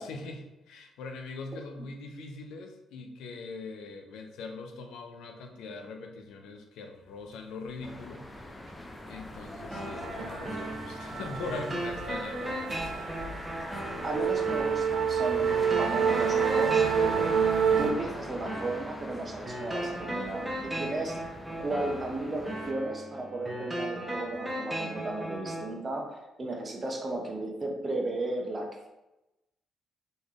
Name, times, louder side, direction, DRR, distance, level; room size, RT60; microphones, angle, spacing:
voice 1, 0.0-8.4 9.1-13.2, left 3 dB, 85° left, 4 dB, 0.6 m, -42 dB
sound 1, 7.8-22.7, left 1 dB, 15° left, 0.6 m, -41 dB
sound 2, 9.1-9.4 9.6-17.9, right 7 dB, 75° right, 0.4 m, -29 dB
sound 3, 9.7-25.7, right 1 dB, 15° right, 1.1 m, -37 dB
voice 2, 14.0-17.4 17.8-28.9, right 2 dB, 30° right, 2 dB, 0.9 m, -35 dB
4.2 x 3.2 x 3.6 m, 0.98 s
cardioid pair, 90°, 0 cm